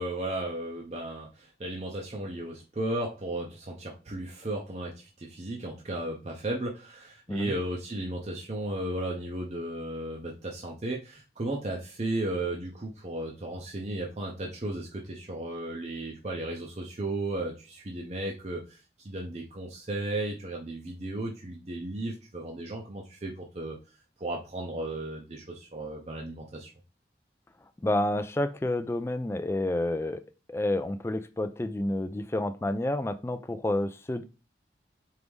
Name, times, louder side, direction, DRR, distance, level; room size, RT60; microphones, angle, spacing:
voice 1, 0.0-23.8 24.2-26.7, right 1 dB, 35° right, 0 dB, 0.6 m, -35 dB
voice 2, 27.8-30.2 30.5-34.2, left 1 dB, 15° left, 10 dB, 0.3 m, -29 dB
4.6 x 2.6 x 3.5 m, 0.31 s
head